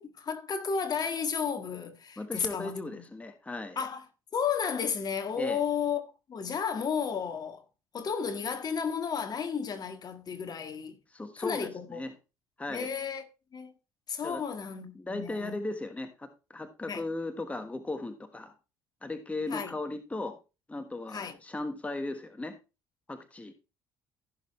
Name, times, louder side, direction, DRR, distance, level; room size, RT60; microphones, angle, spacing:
voice 1, 0.0-3.0 3.7-4.0 4.3-6.0 6.3-7.6 7.9-11.0 11.4-12.0 12.7-13.2 13.5-13.7 14.1-15.6 16.9-17.0 19.5-19.7 21.1-21.4, left 6 dB, 45° left, 1.8 m, -33 dB
voice 2, 2.2-3.8 5.4-5.6 11.1-12.1 12.6-12.9 14.2-14.4 14.9-18.5 19.0-20.4 20.7-22.6 23.1-23.5, left 2 dB, 15° left, 1.4 m, -37 dB
15.5 x 6.6 x 3.2 m
supercardioid pair, 80°, 10 cm